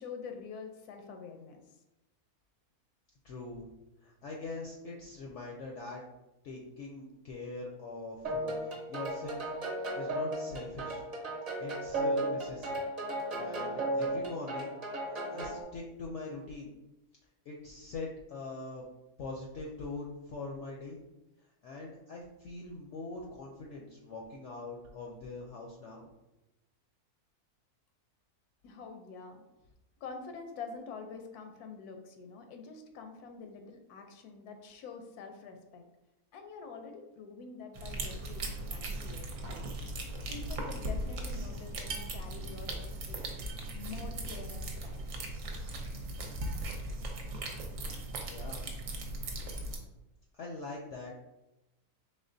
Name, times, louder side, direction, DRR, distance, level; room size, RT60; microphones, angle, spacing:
voice 1, 0.0-1.6 28.6-29.4 30.0-35.8 36.3-39.6 40.3-43.2 43.7-45.1, left 5 dB, 85° left, 5 dB, 1.1 m, -46 dB
voice 2, 3.2-3.7 4.0-6.0 6.4-9.5 9.9-11.0 11.6-12.8 13.4-14.7 15.1-16.7 17.5-18.9 19.2-21.0 21.6-26.1 48.3-48.7 49.6-49.8 50.4-51.2, left 3 dB, 70° left, -1 dB, 0.7 m, -42 dB
sound 1, 8.2-15.6, right 1 dB, 30° right, 0.8 m, -35 dB
sound 2, 37.7-49.8, right 1 dB, 65° right, 0.9 m, -38 dB
4.2 x 3.2 x 2.6 m, 0.98 s
omnidirectional pair, 1.6 m